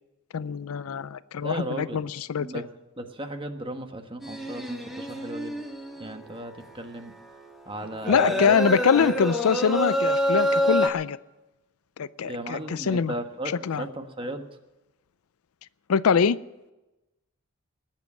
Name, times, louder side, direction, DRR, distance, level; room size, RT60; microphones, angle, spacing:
voice 1, 0.3-2.5 8.1-11.2 12.0-13.1 13.6-13.9 15.9-16.4, left 6 dB, 80° left, 18 dB, 0.5 m, -24 dB
voice 2, 1.4-2.0 2.4-2.6 3.0-5.6 6.0-7.1 7.7-8.6 9.0-9.1 12.2-14.4, right 1 dB, 25° right, 7 dB, 1.3 m, -36 dB
sound 1, 4.2-6.3 6.6-6.7 7.0-7.5 7.8-10.9, equal, ahead, 1.5 m, -27 dB
19.5 x 7.4 x 9.5 m, 1.0 s
head